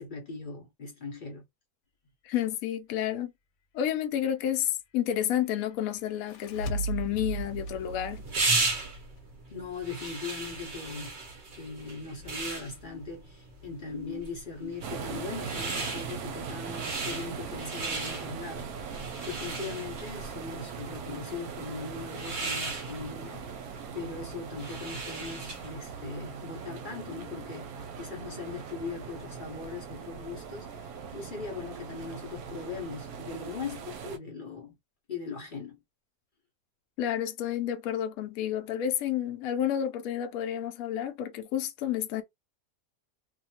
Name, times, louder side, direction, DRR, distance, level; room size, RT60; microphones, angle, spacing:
voice 1, 0.0-1.4 9.5-11.2 11.5-27.7 28.0-34.8 35.1-35.8, left 4 dB, 50° left, 0.6 m, -40 dB
voice 2, 2.2-3.3 3.7-8.2 37.0-42.2, left 10 dB, 70° left, 0.9 m, -30 dB
sound 1, 6.0-9.4, right 3 dB, 90° left, 1.2 m, -36 dB
sound 2, 7.3-25.8, right 3 dB, 50° right, 0.6 m, -36 dB
sound 3, 14.8-34.2, right 6 dB, 70° right, 1.0 m, -40 dB
2.6 x 2.3 x 2.7 m
omnidirectional pair, 1.8 m